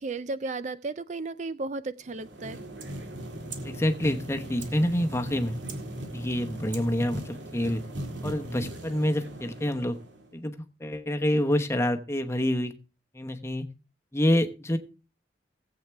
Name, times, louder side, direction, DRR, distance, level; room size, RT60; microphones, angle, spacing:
voice 1, 0.0-2.6, right 3 dB, 40° right, 14 dB, 0.4 m, -34 dB
sound 1, 2.1-10.3, right 1 dB, 85° right, 1.9 m, -38 dB
voice 2, 3.6-5.6 6.1-7.8 8.2-10.0 10.3-10.5 10.8-12.7 13.1-13.6 14.1-14.8, left 1 dB, 15° left, 6 dB, 0.9 m, -27 dB
18.0 x 8.1 x 3.4 m, 0.33 s
head